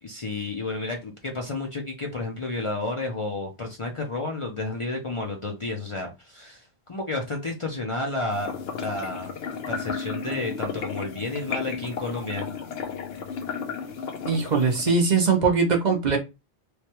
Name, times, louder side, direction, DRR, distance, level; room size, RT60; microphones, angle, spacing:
voice 1, 0.0-9.3 9.7-12.5, left 2 dB, 40° left, 0.5 m, -31 dB
sound 1, 8.3-14.9, left 6 dB, 75° left, 0.9 m, -34 dB
voice 2, 14.3-16.2, right 4 dB, 50° right, 0.7 m, -21 dB
3.2 x 2.2 x 2.8 m
omnidirectional pair, 1.0 m